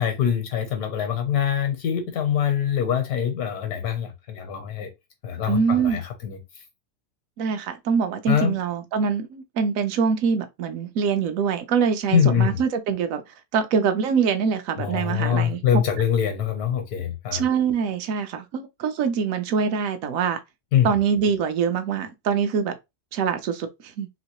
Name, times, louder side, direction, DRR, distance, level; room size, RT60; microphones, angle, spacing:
voice 1, 0.0-4.9 5.2-6.4 8.3-8.5 12.1-12.6 14.8-17.4 20.7-21.0, left 8 dB, 75° left, 1.2 m, -24 dB
voice 2, 5.5-6.0 7.4-13.2 13.5-15.6 17.3-20.4 20.8-22.8 23.1-24.1, right 6 dB, 70° right, 0.9 m, -24 dB
3.1 x 2.9 x 2.9 m
omnidirectional pair, 1.7 m